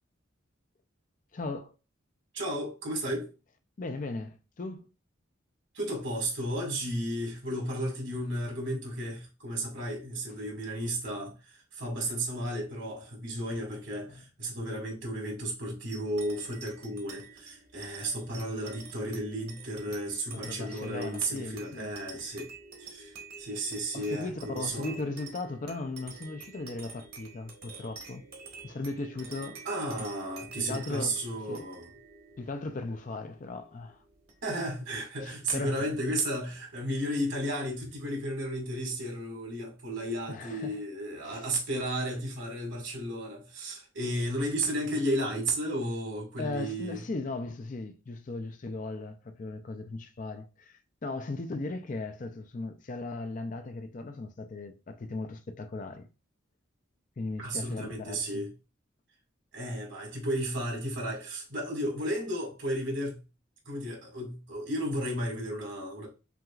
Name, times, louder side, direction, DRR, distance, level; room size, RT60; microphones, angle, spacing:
voice 1, 1.3-1.7 3.8-4.9 14.1-14.2 20.3-21.9 23.9-28.2 28.6-29.6 30.6-31.2 31.5-31.7 32.4-34.0 35.2-35.9 40.3-40.8 41.2-41.5 46.4-56.1 57.2-58.4, left 3 dB, 40° left, 0.4 m, -37 dB
voice 2, 2.3-3.3 5.7-22.5 22.8-25.0 29.7-31.9 34.4-47.0 57.4-58.5 59.5-63.2 63.7-66.1, right 1 dB, 65° right, 1.9 m, -33 dB
sound 1, 15.9-34.8, right 4 dB, 50° right, 1.1 m, -49 dB
5.8 x 2.5 x 2.4 m
head